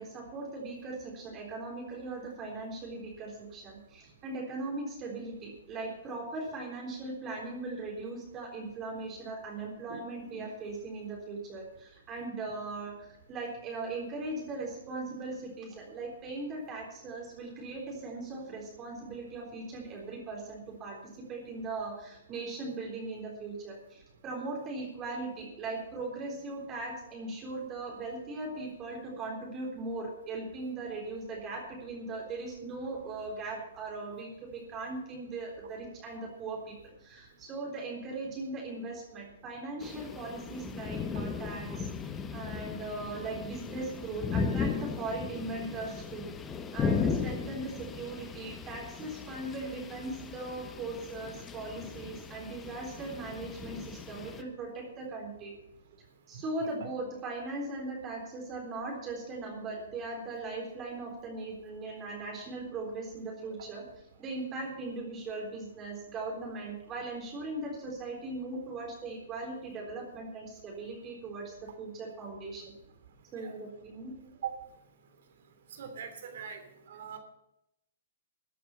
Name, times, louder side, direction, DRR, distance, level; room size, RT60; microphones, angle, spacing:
voice 1, 0.0-46.3 46.7-55.5 56.3-63.9 64.2-72.7 73.3-74.2, right 2 dB, 25° right, -1 dB, 3.8 m, -39 dB
sound 1, 39.8-54.4, left 5 dB, 20° left, 1.1 m, -36 dB
voice 2, 75.7-76.6 76.9-77.2, right 8 dB, 60° right, 7 dB, 2.9 m, -40 dB
14.5 x 9.3 x 5.6 m, 0.83 s
figure-of-eight pair, 120°, 0 cm